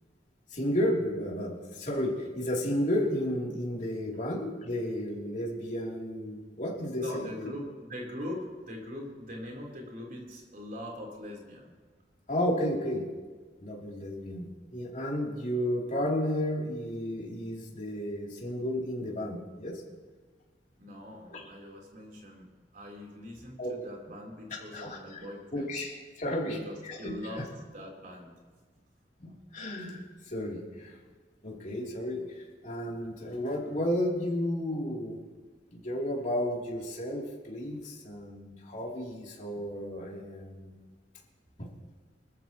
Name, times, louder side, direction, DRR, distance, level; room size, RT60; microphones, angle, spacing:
voice 1, 0.5-7.5 12.3-13.0 13.6-19.7 21.3-21.5 23.6-23.7 24.7-25.2 25.5-26.6 26.8-27.1 29.2-30.9 31.4-32.2 32.6-35.2 35.8-40.7 41.6-41.7, equal, 45° left, -3 dB, 3.2 m, -32 dB
voice 2, 7.0-11.7 20.8-25.7 26.4-28.3, left 1 dB, 50° right, -1 dB, 3.9 m, -42 dB
25.0 x 14.0 x 3.1 m, 1.4 s
head